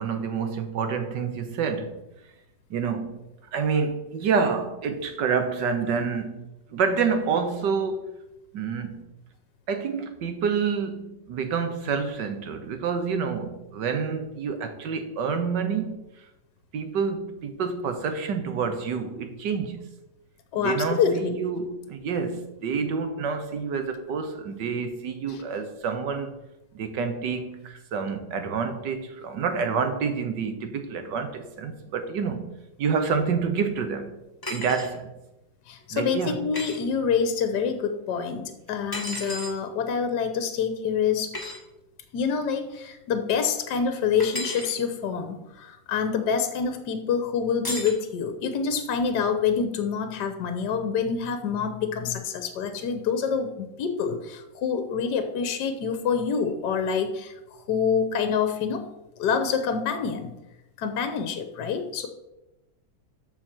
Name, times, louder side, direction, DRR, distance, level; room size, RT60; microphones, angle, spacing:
voice 1, 0.0-2.0 2.7-3.1 3.5-8.1 8.5-9.1 9.7-16.0 16.7-19.8 20.5-26.3 26.7-34.2 34.5-35.1 35.9-36.5, right 5 dB, 75° right, 1.7 m, -28 dB
voice 2, 20.5-21.4 25.3-25.4 35.7-41.3 42.1-57.3 57.7-58.8 59.2-60.3 60.8-62.1, left 6 dB, 70° left, 1.4 m, -26 dB
sound 1, 34.4-34.9 36.5-36.8 38.9-39.6 41.3-41.6 44.2-44.7 47.6-48.0, left 1 dB, 10° left, 1.5 m, -33 dB
13.5 x 4.7 x 4.4 m
omnidirectional pair, 2.0 m